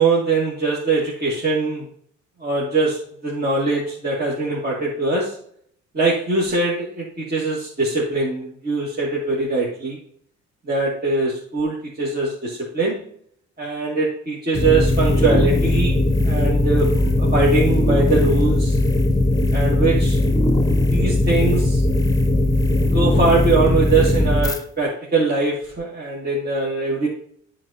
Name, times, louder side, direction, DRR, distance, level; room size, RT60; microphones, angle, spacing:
voice 1, 0.0-1.8 2.4-5.4 5.9-10.0 10.7-13.0 13.6-16.0 16.2-18.8 19.5-20.2 20.9-22.0 22.9-27.1, right 3 dB, 30° right, -5 dB, 2.3 m, -22 dB
sound 1, 14.5-24.6, left 2 dB, 10° left, 1.0 m, -18 dB
13.0 x 4.3 x 2.9 m, 0.64 s
cardioid pair, 90°, 30 cm